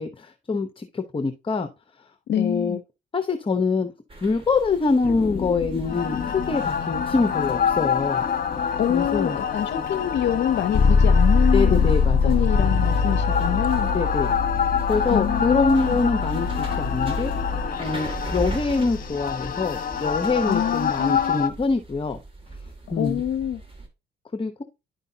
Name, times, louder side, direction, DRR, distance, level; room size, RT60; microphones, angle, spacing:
voice 1, 0.0-1.7 2.4-2.8 3.1-3.9 4.2-8.2 8.9-9.4 11.5-12.5 13.9-14.3 14.9-17.3 17.8-22.2 22.9-23.2 24.3-24.6, left 4 dB, 25° left, 0.9 m, -25 dB
voice 2, 2.3-2.8 8.8-11.9 12.2-13.9 15.1-16.0 20.4-21.4 22.9-23.6, left 10 dB, 65° left, 0.6 m, -26 dB
sound 1, 4.1-23.9, right 2 dB, 25° right, 2.3 m, -41 dB
sound 2, 5.0-21.5, left 5 dB, 45° left, 1.1 m, -23 dB
11.0 x 5.3 x 2.8 m
cardioid pair, 90°, 20 cm